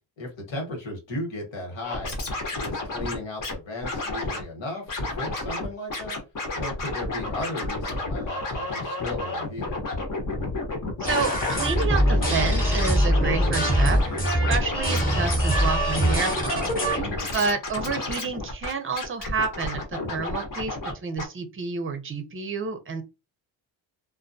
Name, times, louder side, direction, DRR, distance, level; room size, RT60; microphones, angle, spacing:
voice 1, 0.2-2.2 2.5-6.2 6.5-9.8 16.9-17.4, left 1 dB, 70° left, 1.3 m, -35 dB
Scratching (performance technique), 1.8-3.5 3.8-4.4 4.9-5.7 5.9-20.9 21.2-21.3, left 2 dB, 45° left, 0.9 m, -31 dB
sound 1, 11.0-17.0, equal, 20° left, 1.0 m, -23 dB
voice 2, 11.0-14.0 14.5-16.7 17.3-20.8 21.0-23.0, right 5 dB, 30° right, 0.6 m, -29 dB
2.2 x 2.1 x 2.6 m
cardioid pair, 85°, 46 cm